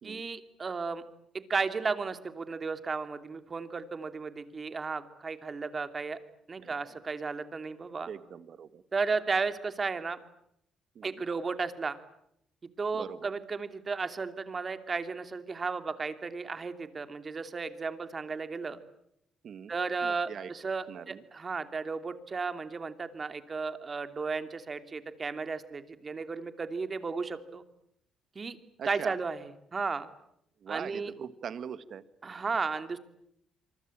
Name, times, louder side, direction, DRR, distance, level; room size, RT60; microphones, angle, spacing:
voice 1, 0.0-1.0 1.3-6.2 6.5-8.1 8.9-10.2 11.0-12.0 12.8-18.8 19.7-27.6 28.3-28.6 28.8-30.1 30.7-31.1 32.2-33.0, right 4 dB, 35° right, 9 dB, 2.7 m, -34 dB
voice 2, 8.1-8.8 10.9-11.2 12.9-13.3 19.4-19.7 20.0-20.5 20.9-21.2 28.8-29.2 30.6-32.0, right 8 dB, 60° right, 14 dB, 1.6 m, -42 dB
27.0 x 24.0 x 8.9 m, 0.76 s
cardioid pair, 90°, 0 cm